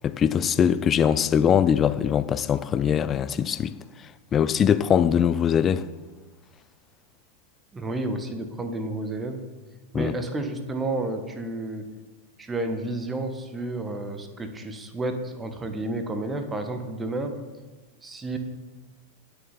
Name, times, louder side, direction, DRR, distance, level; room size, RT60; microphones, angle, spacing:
voice 1, 0.0-3.7 4.3-5.9 9.9-10.1, left 8 dB, 25° left, 0.4 m, -22 dB
voice 2, 7.7-9.4 9.9-11.9 12.4-17.4 18.0-18.4, right 2 dB, 15° right, 1.5 m, -31 dB
18.5 x 6.8 x 4.3 m
figure-of-eight pair, 90°, 0 cm